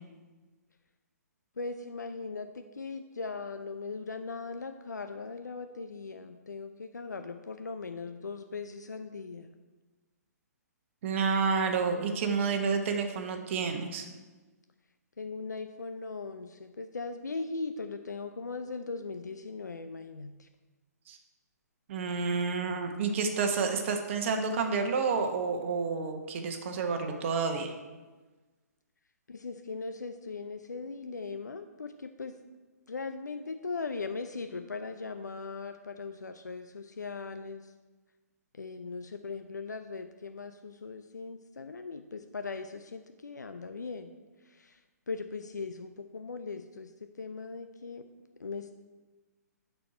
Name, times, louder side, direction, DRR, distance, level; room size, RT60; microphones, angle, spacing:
voice 1, 1.6-9.5 15.2-20.5 29.3-32.3 32.9-37.7 38.5-44.1 44.4-44.8 45.1-46.9 47.2-48.1 48.4-48.7, left 4 dB, 90° left, 8 dB, 0.5 m, -39 dB
voice 2, 11.0-14.1 21.1-21.2 21.9-27.7, right 5 dB, 45° right, 5 dB, 1.2 m, -29 dB
11.5 x 4.6 x 4.3 m, 1.3 s
hypercardioid pair, 135°, 9 cm